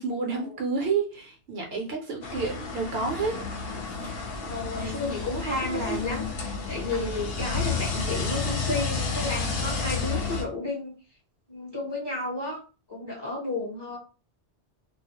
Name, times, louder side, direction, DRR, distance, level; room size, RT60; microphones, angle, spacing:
voice 1, 0.0-3.4 3.9-4.1 4.8-4.9 5.7-6.0, right 4 dB, 65° right, 2 dB, 0.8 m, -30 dB
sound 1, 2.2-10.4, left 4 dB, 60° left, 0.8 m, -31 dB
voice 2, 4.5-10.9 11.5-12.6 12.9-14.0, left 2 dB, 25° left, -4 dB, 0.7 m, -32 dB
2.3 x 2.0 x 2.8 m, 0.34 s
omnidirectional pair, 1.2 m